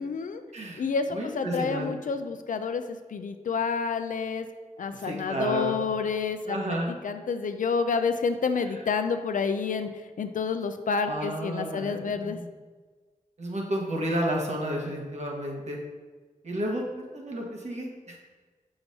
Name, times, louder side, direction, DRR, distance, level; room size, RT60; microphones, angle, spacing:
voice 1, 0.0-0.4 0.8-4.5 4.8-6.6 7.0-9.9 10.2-12.4, left 5 dB, 75° left, 8 dB, 0.4 m, -29 dB
voice 2, 0.5-0.8 1.1-1.9 5.0-5.8 6.4-6.9 11.0-12.5 13.4-15.8 16.4-18.2, right 1 dB, 55° right, -1 dB, 1.4 m, -31 dB
6.9 x 5.7 x 2.8 m, 1.4 s
wide cardioid pair, 75°, 13 cm